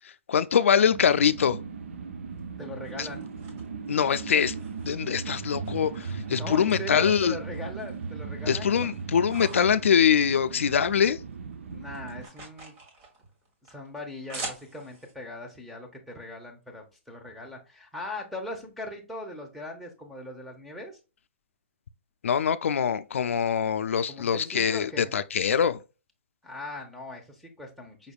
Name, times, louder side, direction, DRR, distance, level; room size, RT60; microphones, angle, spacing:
voice 1, 0.3-1.6 3.0-3.1 3.9-4.5 4.8-7.3 8.5-11.2 22.2-25.8, left 7 dB, 90° left, 0.4 m, -23 dB
sound 1, 0.9-12.3, right 5 dB, 75° right, 0.6 m, -37 dB
sound 2, 2.3-5.2 5.6-6.7 7.1-8.1 8.4-11.0 11.3-15.1, right 2 dB, 25° right, 1.3 m, -45 dB
voice 2, 2.6-3.3 6.3-8.9 11.7-12.7 13.6-21.0 24.1-25.2 26.4-28.1, left 1 dB, ahead, 0.8 m, -40 dB
5.2 x 3.3 x 2.3 m
hypercardioid pair, 160°, 7 cm